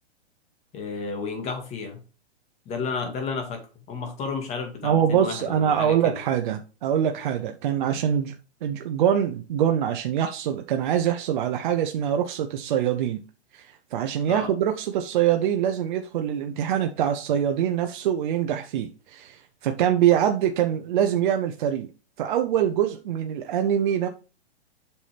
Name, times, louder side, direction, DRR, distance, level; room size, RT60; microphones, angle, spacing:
voice 1, 0.7-2.0 2.7-3.6 3.9-6.2 14.3-14.5, left 5 dB, 20° left, 2.0 m, -32 dB
voice 2, 4.8-8.3 8.6-13.2 13.5-21.9 22.2-24.1, right 9 dB, 45° right, 0.8 m, -24 dB
8.3 x 5.8 x 3.4 m
hypercardioid pair, 150°, 32 cm